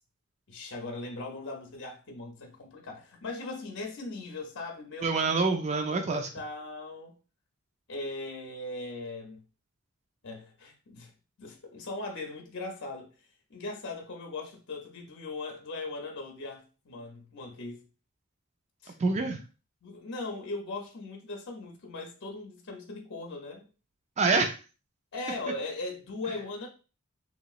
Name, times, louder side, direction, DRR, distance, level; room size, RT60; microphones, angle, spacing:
voice 1, 0.5-5.6 6.0-7.1 7.9-9.4 10.2-11.1 11.4-13.1 13.5-17.8 18.8-19.0 19.8-23.6 25.1-26.7, left 2 dB, 60° left, 0.6 m, -39 dB
voice 2, 5.0-6.3 19.0-19.4 24.2-24.6, right 3 dB, 30° right, 0.4 m, -26 dB
3.0 x 2.9 x 2.4 m
head